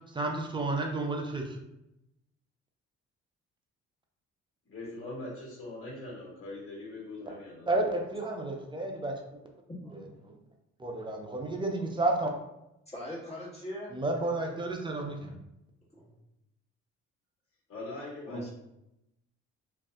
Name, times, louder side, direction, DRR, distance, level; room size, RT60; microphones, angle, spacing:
voice 1, 0.1-1.4 7.7-9.1 10.8-12.3 13.9-15.3, right 2 dB, 15° right, 2 dB, 0.5 m, -31 dB
voice 2, 4.7-7.9 17.7-18.5, left 2 dB, 45° left, -5 dB, 1.5 m, -42 dB
voice 3, 9.7-10.3 12.8-13.9 15.9-16.2 18.2-18.5, equal, 20° left, -6 dB, 1.4 m, -41 dB
2.6 x 2.3 x 3.3 m, 0.87 s
cardioid pair, 90°, 30 cm